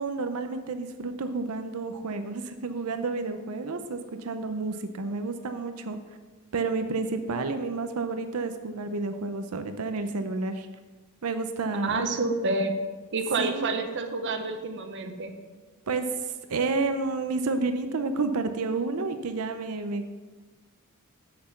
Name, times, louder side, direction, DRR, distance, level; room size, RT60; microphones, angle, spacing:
voice 1, 0.0-6.0 6.5-10.7 11.2-12.0 13.4-13.7 15.9-20.1, right 3 dB, 80° right, 8 dB, 0.6 m, -30 dB
voice 2, 11.8-12.7 13.1-15.3, right 3 dB, 55° right, 6 dB, 0.9 m, -28 dB
7.9 x 6.8 x 5.7 m, 1.3 s
head